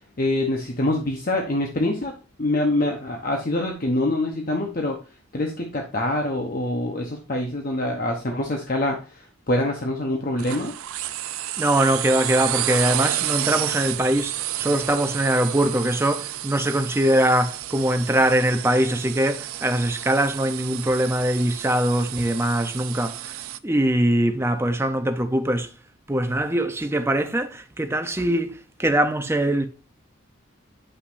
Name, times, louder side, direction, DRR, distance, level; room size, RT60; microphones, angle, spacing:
voice 1, 0.2-5.0 5.3-10.7, left 1 dB, 45° left, 0.9 m, -25 dB
sound 1, 10.4-23.6, right 13 dB, 85° right, 0.4 m, -30 dB
voice 2, 11.6-23.4 23.6-25.7 26.1-29.7, right 1 dB, 10° right, 0.6 m, -22 dB
9.7 x 5.8 x 2.6 m
head